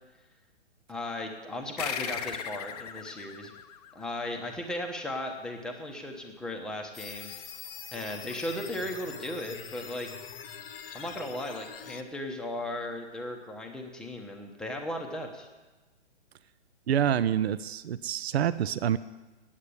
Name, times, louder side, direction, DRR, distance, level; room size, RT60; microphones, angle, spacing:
voice 1, 0.9-3.5 3.9-7.6 7.9-10.1 10.9-15.5, left 1 dB, ahead, 2 dB, 0.8 m, -36 dB
sound 1, 1.8-4.8, left 8 dB, 35° left, 0.6 m, -38 dB
sound 2, 6.9-12.0, left 7 dB, 55° left, 1.0 m, -43 dB
voice 2, 16.9-19.0, right 9 dB, 65° right, 14 dB, 0.6 m, -27 dB
9.0 x 8.5 x 8.4 m, 1.2 s
hypercardioid pair, 135°, 34 cm